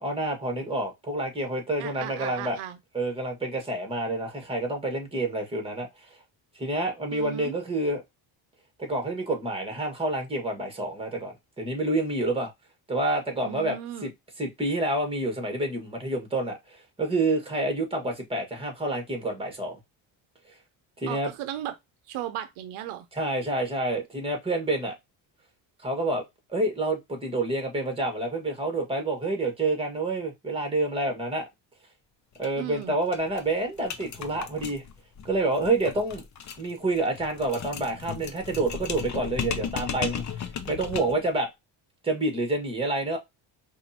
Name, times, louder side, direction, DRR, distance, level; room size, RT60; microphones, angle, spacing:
voice 1, 0.0-2.6 2.9-5.9 6.6-8.0 8.8-12.5 12.9-14.1 14.4-19.8 21.0-21.3 23.1-24.9 25.8-26.2 26.5-31.4 32.4-34.8 35.2-36.2 36.6-41.5 42.0-43.2, right 2 dB, 10° right, 1.7 m, -28 dB
voice 2, 1.8-2.8 7.1-7.5 13.4-14.1 21.1-21.7 22.1-23.1 32.6-32.9, right 12 dB, 80° right, 0.7 m, -36 dB
sound 1, 32.4-32.5 32.8-32.9 33.1-41.3, left 7 dB, 35° left, 0.7 m, -36 dB
5.0 x 2.6 x 2.8 m
cardioid pair, 105°, 49 cm